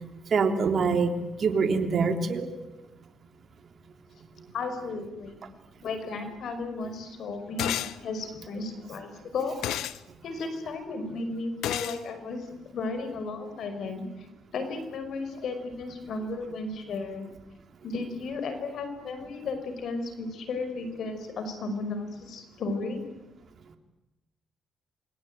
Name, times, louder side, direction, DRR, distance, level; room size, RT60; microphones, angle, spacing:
voice 1, 0.3-1.1 1.4-2.5, right 5 dB, 50° right, 5 dB, 3.4 m, -24 dB
voice 2, 4.5-5.4 5.8-9.5 10.2-14.3 14.5-17.3 17.8-23.0, left 3 dB, 65° left, 8 dB, 5.5 m, -34 dB
sound 1, 7.6-8.0 9.6-10.0 11.6-12.0, left 12 dB, 85° left, 0.9 m, -30 dB
28.0 x 22.0 x 9.2 m, 1.0 s
cardioid pair, 90°, 0 cm